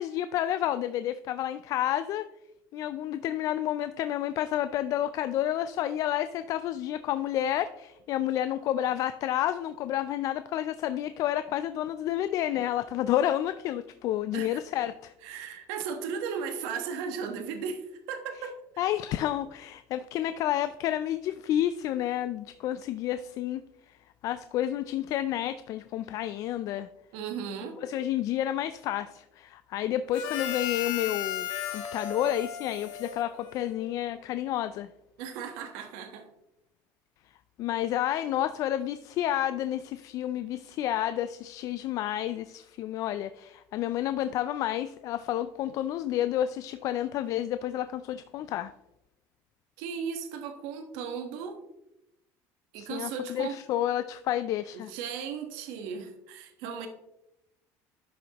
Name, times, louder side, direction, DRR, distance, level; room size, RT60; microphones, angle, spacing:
voice 1, 0.0-2.3 2.7-15.1 18.8-23.6 23.9-24.0 24.2-26.9 27.8-31.5 31.7-34.9 37.6-48.7 52.8-54.9, left 12 dB, 50° left, 12 dB, 0.3 m, -30 dB
voice 2, 15.2-18.8 27.1-27.8 35.2-36.3 49.8-51.6 52.7-53.6 54.9-56.9, right 6 dB, 80° right, 5 dB, 1.2 m, -36 dB
Harmonica, 30.1-33.9, left 9 dB, 75° left, 1.1 m, -35 dB
11.5 x 6.2 x 2.9 m, 0.87 s
cardioid pair, 140°, 7 cm